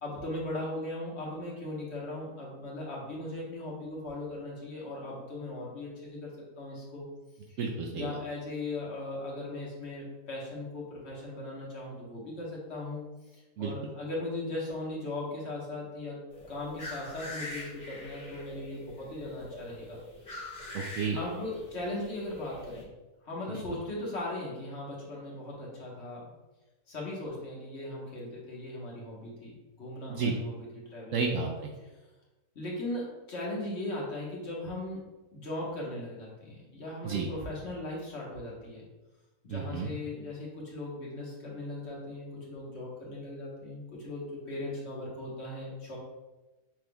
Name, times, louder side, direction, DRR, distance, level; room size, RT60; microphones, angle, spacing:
voice 1, 0.0-7.0 7.5-7.6 7.9-13.0 13.3-16.2 16.5-20.0 20.2-20.4 21.1-22.9 23.2-26.3 26.9-30.6 30.9-31.3 32.5-35.0 35.3-38.8 39.4-46.0, left 2 dB, 50° left, -4 dB, 1.4 m, -38 dB
voice 2, 7.6-8.2 13.6-13.9 20.7-21.2 23.5-23.6 30.1-30.3 31.1-31.7 37.0-37.3 39.5-39.9, right 5 dB, 70° right, 1 dB, 0.8 m, -32 dB
sound 1, 16.3-22.8, left 1 dB, 25° left, 1.3 m, -43 dB
6.0 x 3.5 x 2.3 m, 1.1 s
omnidirectional pair, 1.6 m